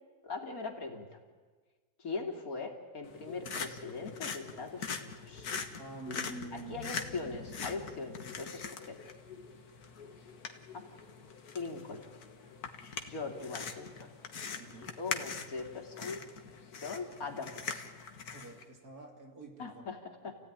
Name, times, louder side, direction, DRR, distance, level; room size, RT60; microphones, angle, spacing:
voice 1, 0.2-1.1 2.0-5.5 6.5-9.0 10.7-10.9 11.5-12.0 13.0-14.1 15.0-16.2 16.8-17.8 19.6-20.4, left 4 dB, 70° left, 3 dB, 3.0 m, -41 dB
sound 1, 3.0-18.6, left 6 dB, 90° left, 2.0 m, -42 dB
voice 2, 5.8-6.9 14.6-15.0 18.3-19.8 20.2-20.4, right 2 dB, 85° right, 2 dB, 3.5 m, -47 dB
29.5 x 16.0 x 10.0 m, 1.5 s
omnidirectional pair, 1.6 m